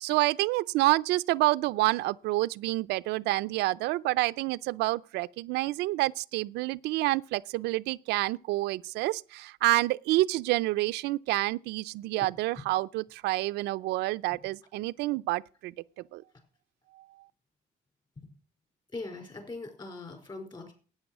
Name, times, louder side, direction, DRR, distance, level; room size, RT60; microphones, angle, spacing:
voice 1, 0.0-15.7 16.1-16.2, right 19 dB, 85° right, 0.5 m, -28 dB
voice 2, 18.9-20.7, left 3 dB, 25° left, 5.0 m, -41 dB
13.0 x 9.2 x 6.0 m
cardioid pair, 110°, 17 cm